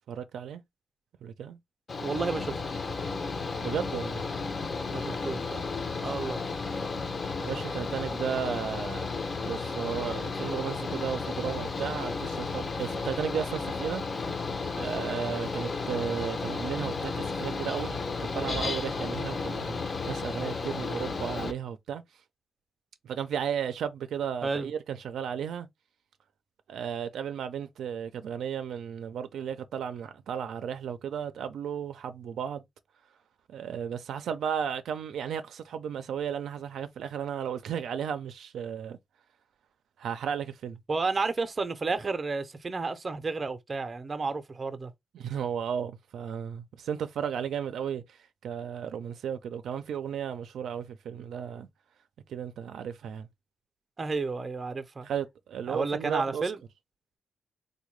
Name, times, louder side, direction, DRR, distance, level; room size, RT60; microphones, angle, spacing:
voice 1, 0.1-0.6 1.2-1.6 3.6-4.2 7.4-9.1 9.4-14.0 14.8-19.7 20.1-22.0 23.0-25.7 26.7-32.6 33.5-39.0 40.0-40.8 45.1-51.7 52.3-53.3 55.0-56.4, right 8 dB, 90° right, 0.4 m, -34 dB
Mechanical fan, 1.9-21.5, left 4 dB, 35° left, 0.5 m, -33 dB
voice 2, 2.0-2.6 4.9-5.6 6.0-6.4 24.4-24.7 40.9-44.9 54.0-55.1 55.7-56.6, right 4 dB, 30° right, 0.5 m, -31 dB
3.6 x 2.2 x 3.1 m
wide cardioid pair, 135°, 0 cm